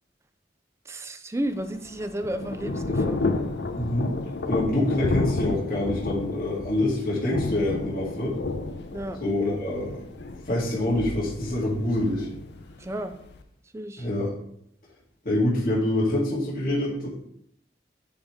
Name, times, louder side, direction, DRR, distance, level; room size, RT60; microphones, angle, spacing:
voice 1, 0.9-3.2 8.9-9.2 12.8-13.1 13.7-14.1, right 1 dB, 15° right, 9 dB, 0.4 m, -32 dB
Thunder / Rain, 1.5-13.4, left 3 dB, 70° left, 0.6 m, -31 dB
voice 2, 3.7-4.1 4.4-8.4 9.2-10.0 10.5-12.3 14.0-14.3 15.2-17.2, left 1 dB, 50° left, -6 dB, 1.9 m, -26 dB
10.0 x 3.4 x 3.6 m, 0.72 s
head